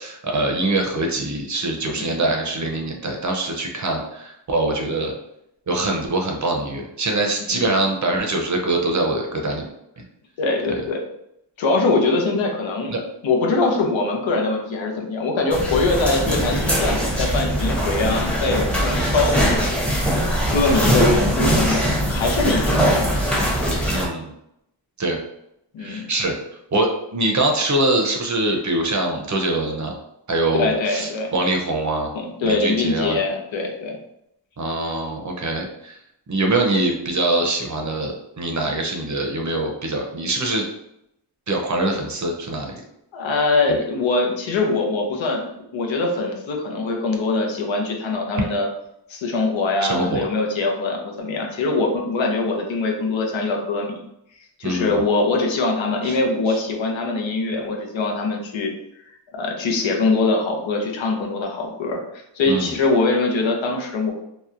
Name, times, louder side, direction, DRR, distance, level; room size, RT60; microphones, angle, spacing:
voice 1, 0.0-5.1 5.7-9.7 12.9-13.0 23.9-24.3 25.0-25.2 25.8-26.4 26.7-30.0 30.3-32.1 32.4-33.2 34.6-36.0 36.3-40.7 41.5-42.7 43.7-43.8 49.8-50.2 54.6-55.0 56.0-56.2 56.5-56.6 62.5-62.7, right 2 dB, 40° right, 2 dB, 0.6 m, -23 dB
voice 2, 10.4-11.0 11.6-12.9 13.2-20.2 20.5-23.1 25.7-26.1 30.5-31.3 32.1-34.0 43.1-48.7 49.1-54.0 54.6-58.7 59.3-64.1, left 3 dB, 90° left, 1 dB, 0.6 m, -23 dB
sound 1, 15.5-24.1, equal, 5° left, 0.7 m, -21 dB
2.8 x 2.1 x 2.4 m, 0.80 s
wide cardioid pair, 70°, 45 cm